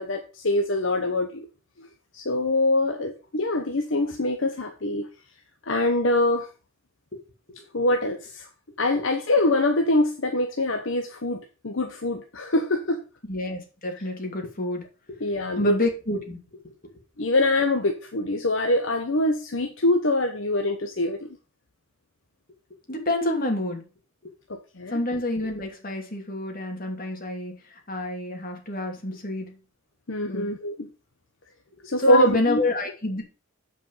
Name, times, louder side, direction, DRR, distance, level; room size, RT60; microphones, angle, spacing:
voice 1, 0.0-1.5 1.8-1.9 2.1-5.1 5.7-6.5 7.7-8.5 8.8-13.0 13.9-14.0 15.2-15.8 17.2-21.3 24.5-25.0 30.1-30.9 31.8-32.6, left 2 dB, 70° left, 4 dB, 1.0 m, -24 dB
voice 2, 13.3-14.8 15.6-16.4 16.6-16.7 22.9-23.8 24.9-27.5 27.9-29.6 30.3-30.5 32.0-33.2, left 1 dB, 45° left, 2 dB, 2.8 m, -27 dB
9.1 x 5.4 x 5.6 m, 0.34 s
head